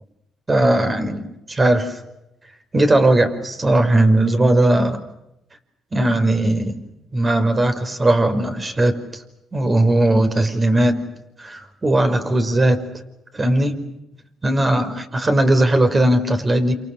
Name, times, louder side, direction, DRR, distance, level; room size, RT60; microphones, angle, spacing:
voice 1, 0.5-1.2 1.5-2.0 2.7-5.0 5.9-6.8 7.1-9.2 9.5-11.0 11.4-12.8 13.3-13.8 14.4-16.7, right 1 dB, 25° right, 7 dB, 5.2 m, -18 dB
29.0 x 28.5 x 6.5 m, 0.86 s
cardioid pair, 90°, 0 cm